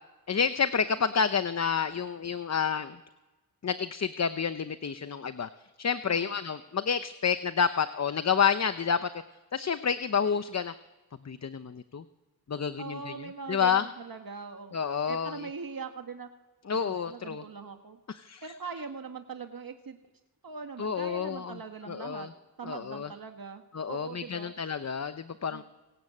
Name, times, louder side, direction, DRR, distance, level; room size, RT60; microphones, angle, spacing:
voice 1, 0.3-3.0 3.6-5.5 5.8-9.1 9.5-10.7 11.2-12.0 12.5-13.8 14.7-15.5 16.7-17.4 18.1-18.4 20.8-21.6 21.9-22.3 22.7-23.1 23.7-25.6, left 6 dB, 40° left, 11 dB, 0.8 m, -29 dB
voice 2, 6.1-6.4 12.8-14.8 15.1-16.3 16.7-18.0 18.4-20.0 20.4-22.3 22.6-24.5 25.5-25.6, right 5 dB, 60° right, 5 dB, 1.8 m, -41 dB
27.0 x 22.0 x 8.6 m, 1.2 s
wide cardioid pair, 90°, 40 cm